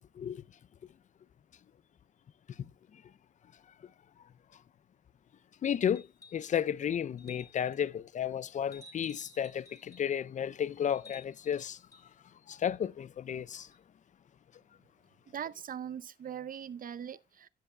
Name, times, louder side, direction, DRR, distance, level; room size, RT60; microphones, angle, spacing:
voice 1, 5.6-6.1 6.3-11.8 12.5-13.7, left 9 dB, 40° left, 0.4 m, -33 dB
sound 1, 6.0-6.5 7.2-7.8 8.7-10.1 10.9-12.1 13.7-13.8, left 3 dB, 15° left, 2.5 m, -55 dB
voice 2, 15.3-17.5, right 8 dB, 45° right, 0.7 m, -41 dB
14.0 x 9.8 x 2.2 m
cardioid pair, 90°, 20 cm